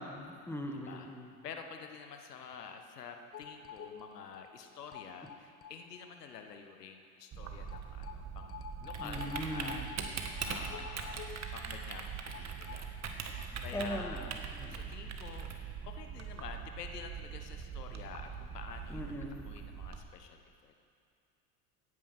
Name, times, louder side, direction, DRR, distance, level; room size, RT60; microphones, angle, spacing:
voice 1, 0.0-1.3 9.0-9.9 13.7-14.2 14.6-14.8 18.9-19.5, equal, 5° left, 3 dB, 1.8 m, -40 dB
voice 2, 0.7-9.8 10.1-13.0 13.3-14.3 14.7-15.5 15.8-19.0 19.4-20.8, left 6 dB, 90° left, 5 dB, 1.2 m, -48 dB
sound 1, 3.3-6.1 6.3-6.4 6.7-6.8 7.7-13.4 13.7-13.8 14.1-14.2, left 7 dB, 30° left, 1.1 m, -48 dB
Typing, 7.3-20.0, right 6 dB, 35° right, 1.7 m, -42 dB
16.5 x 9.9 x 6.0 m, 2.3 s
hypercardioid pair, 75°, 46 cm